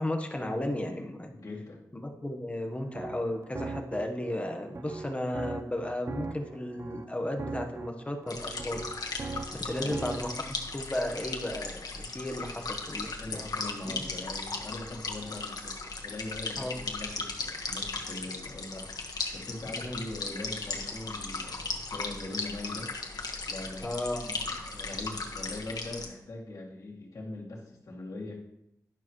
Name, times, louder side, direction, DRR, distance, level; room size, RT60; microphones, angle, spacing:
voice 1, 0.0-1.3 1.9-8.9 9.5-13.4 13.8-14.0 16.6-16.8 19.8-20.0 23.8-24.4, left 1 dB, 20° left, 4 dB, 1.1 m, -34 dB
voice 2, 1.3-1.8 9.7-10.0 12.4-12.6 13.1-22.9 23.5-23.9 24.2-28.4, left 2 dB, 55° left, -3 dB, 2.5 m, -41 dB
sound 1, 2.7-10.4, right 3 dB, 45° right, 0.5 m, -41 dB
sound 2, 8.3-26.1, left 3 dB, 90° left, 1.4 m, -37 dB
11.5 x 11.0 x 3.1 m, 0.82 s
wide cardioid pair, 145°, 7 cm